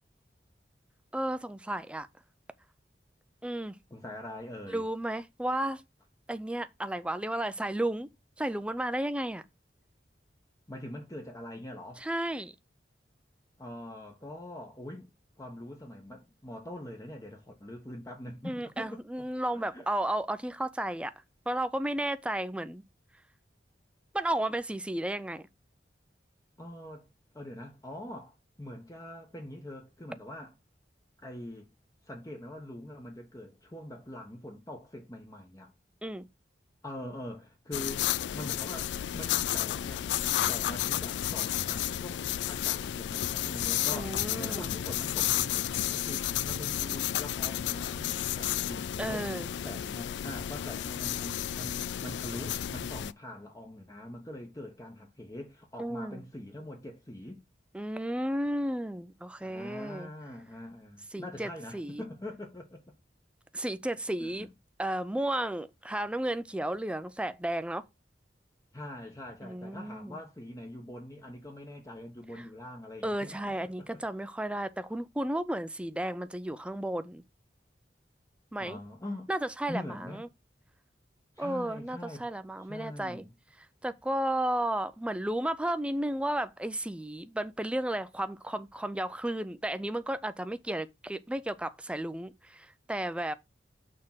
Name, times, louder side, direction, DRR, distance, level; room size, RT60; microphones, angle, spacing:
voice 1, 1.1-2.1 3.4-3.8 4.7-5.8 6.3-8.1 8.4-9.4 12.0-12.5 18.4-21.1 21.5-22.8 24.1-25.4 36.0-36.3 43.9-44.7 49.0-49.5 55.8-56.2 57.7-60.1 61.1-62.0 63.5-64.5 64.8-67.8 69.4-70.2 72.4-72.5 73.0-77.2 78.5-78.8 79.3-80.3 81.4-83.2 83.8-93.3, right 1 dB, 5° right, 0.5 m, -33 dB
voice 2, 3.9-4.8 10.7-12.1 13.6-15.1 15.4-19.0 19.5-19.9 26.6-27.1 27.3-30.5 31.2-31.7 32.0-35.7 36.8-38.1 38.3-49.3 49.6-57.4 59.4-63.0 64.2-64.5 68.7-74.0 78.6-79.3 79.7-80.2 81.4-82.3 82.7-83.3, left 1 dB, 20° left, 1.0 m, -43 dB
sound 1, 37.7-53.1, left 11 dB, 75° left, 0.3 m, -32 dB
6.6 x 3.7 x 5.7 m
head